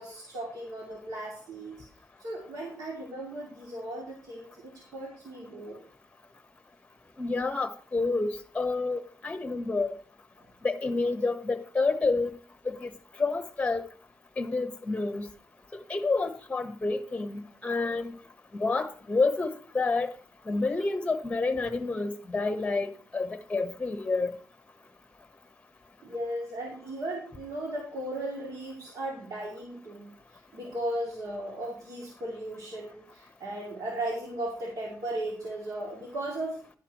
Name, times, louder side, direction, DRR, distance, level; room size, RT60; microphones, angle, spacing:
voice 1, 0.0-1.8 2.2-5.8 26.0-36.6, right 1 dB, 65° right, 2.7 m, -36 dB
voice 2, 7.2-9.9 10.6-12.3 12.6-12.9 13.2-13.8 14.4-15.2 15.7-18.1 18.6-20.1 20.5-24.3, left 3 dB, 15° left, 1.2 m, -29 dB
11.5 x 11.0 x 3.1 m
wide cardioid pair, 140°, 7 cm